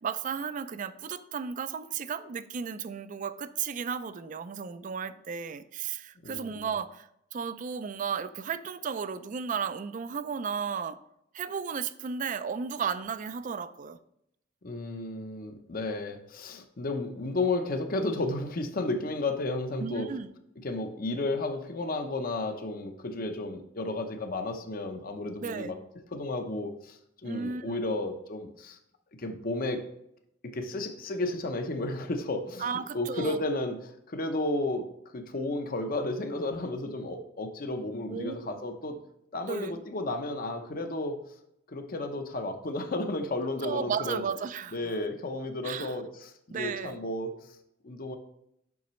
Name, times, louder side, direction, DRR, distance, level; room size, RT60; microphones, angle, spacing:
voice 1, 0.0-11.0 11.3-14.0 19.8-20.3 25.4-25.7 27.2-27.7 32.6-33.4 38.1-38.3 39.4-39.8 43.6-44.8 45.6-46.0 46.5-47.0, right 6 dB, 45° right, 0.4 m, -34 dB
voice 2, 6.2-6.7 14.6-20.1 20.6-25.8 26.1-28.8 29.2-29.9 30.4-32.6 32.9-39.0 39.3-41.2 41.7-44.2 44.7-47.6 47.8-48.2, left 2 dB, 50° left, 0.8 m, -33 dB
7.1 x 5.9 x 3.1 m
head